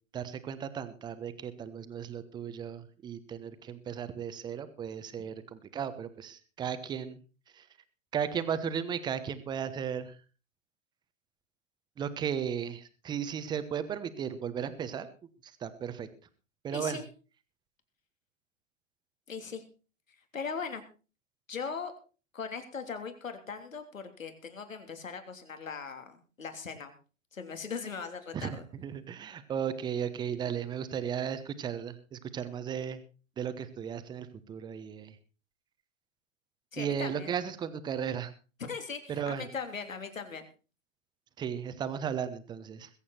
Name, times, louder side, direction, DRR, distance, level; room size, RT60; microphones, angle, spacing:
voice 1, 0.1-7.2 7.5-7.6 8.1-10.2 12.0-15.1 15.4-16.1 16.6-17.0 28.3-33.0 33.4-35.2 36.8-38.3 39.1-39.5 41.4-42.9, right 8 dB, 10° right, 12 dB, 1.0 m, -35 dB
voice 2, 16.7-17.1 19.3-19.6 20.1-20.8 21.5-21.9 22.3-26.9 27.3-28.6 36.7-37.3 38.7-40.5, left 5 dB, 80° left, 7 dB, 3.2 m, -39 dB
21.5 x 8.5 x 4.4 m, 0.35 s
hypercardioid pair, 130°, 39 cm